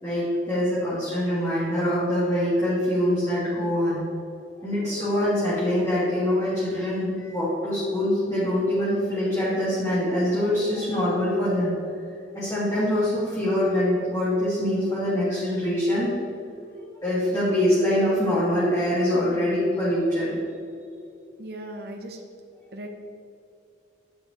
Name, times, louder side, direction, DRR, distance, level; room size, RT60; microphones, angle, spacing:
voice 1, 0.0-4.0 4.6-11.7 12.3-16.1 16.7-20.4, left 1 dB, 20° left, -11 dB, 2.1 m, -24 dB
voice 2, 21.4-22.2 22.7-22.9, right 1 dB, 55° right, 2 dB, 0.8 m, -37 dB
10.0 x 5.0 x 4.3 m, 2.5 s
head